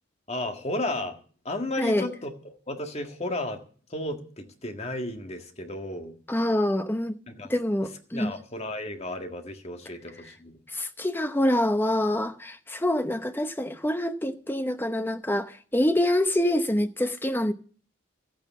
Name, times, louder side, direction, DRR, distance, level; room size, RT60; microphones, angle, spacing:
voice 1, 0.3-1.2 1.4-3.6 3.9-6.1 7.3-7.5 8.1-10.5, left 1 dB, 35° left, 1.8 m, -33 dB
voice 2, 6.3-7.1 7.5-8.3 10.7-17.5, left 1 dB, 10° left, 0.8 m, -26 dB
14.0 x 9.2 x 7.3 m
head